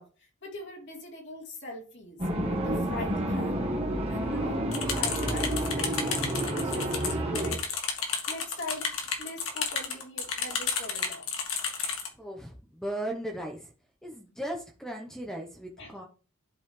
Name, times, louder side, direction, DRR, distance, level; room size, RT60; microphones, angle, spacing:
voice 1, 0.0-3.6 4.1-7.7 8.3-11.3 15.8-16.1, left 1 dB, 60° left, -1 dB, 2.9 m, -42 dB
sound 1, 2.2-7.6, right 1 dB, 30° right, 1.4 m, -29 dB
sound 2, 4.7-12.1, left 6 dB, 75° left, 1.8 m, -32 dB
voice 2, 12.2-13.7 14.0-16.1, right 1 dB, 5° left, 2 dB, 0.9 m, -37 dB
11.0 x 5.5 x 3.2 m, 0.38 s
head